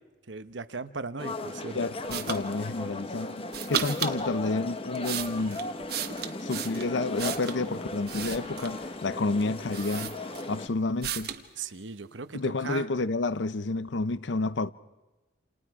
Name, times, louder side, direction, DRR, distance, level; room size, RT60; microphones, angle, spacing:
voice 1, 0.3-1.8 11.6-12.9, right 4 dB, 85° right, 1.0 m, -37 dB
sound 1, 1.2-10.7, left 2 dB, 30° left, 1.1 m, -36 dB
voice 2, 1.7-5.7 6.4-10.1 10.5-11.3 12.3-14.7, left 3 dB, 80° left, 0.7 m, -30 dB
sound 2, 2.1-2.4 3.5-4.2 4.8-7.6 8.0-8.8 9.4-9.5 9.7-10.6 11.0-11.4, right 9 dB, 60° right, 1.4 m, -34 dB
29.0 x 28.0 x 4.9 m
head